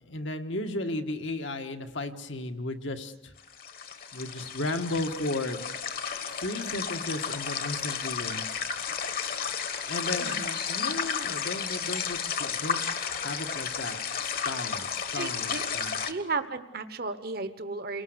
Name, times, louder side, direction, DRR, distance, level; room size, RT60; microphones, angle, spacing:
voice 1, 0.0-3.3 4.1-5.6 6.4-8.5 9.9-12.8 13.2-14.0 14.2-16.0, left 2 dB, 75° left, 5 dB, 1.8 m, -34 dB
sound 1, 3.4-16.1, left 7 dB, 50° left, 1.4 m, -32 dB
voice 2, 15.1-15.6 16.0-18.0, right 4 dB, 50° right, 10 dB, 1.1 m, -34 dB
29.0 x 19.5 x 8.0 m, 1.0 s
head